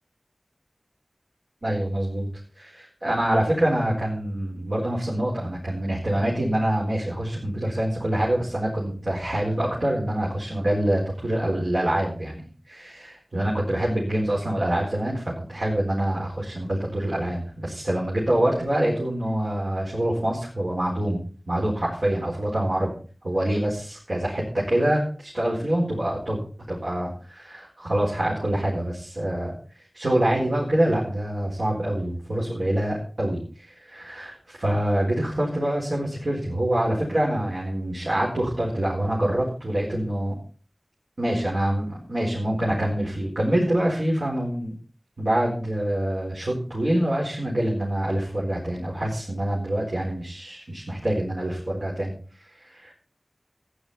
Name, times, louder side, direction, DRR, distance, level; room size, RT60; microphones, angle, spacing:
voice 1, 1.6-2.3 2.6-22.9 23.2-26.4 26.7-40.3 41.2-44.7 45.2-52.1 52.4-52.9, right 1 dB, 80° right, -5 dB, 4.4 m, -25 dB
14.5 x 10.5 x 4.3 m, 0.40 s
wide cardioid pair, 45°, 0 cm